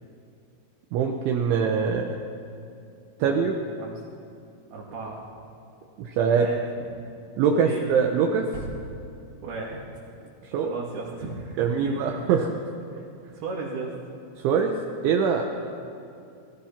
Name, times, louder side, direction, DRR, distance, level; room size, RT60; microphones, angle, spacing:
voice 1, 0.9-2.3 3.2-3.5 6.0-6.5 7.4-8.5 10.4-10.8 11.6-12.5 14.4-14.8 15.0-15.4, right 6 dB, 75° right, 2 dB, 3.3 m, -23 dB
voice 2, 4.7-5.3 6.3-6.6 7.6-7.9 9.4-9.8 10.6-12.1 13.4-14.0 15.5-15.7, right 4 dB, 55° right, -4 dB, 4.0 m, -35 dB
sound 1, 8.5-10.6, right 1 dB, 30° right, 3.3 m, -41 dB
28.5 x 20.5 x 6.0 m, 2.6 s
omnidirectional pair, 5.9 m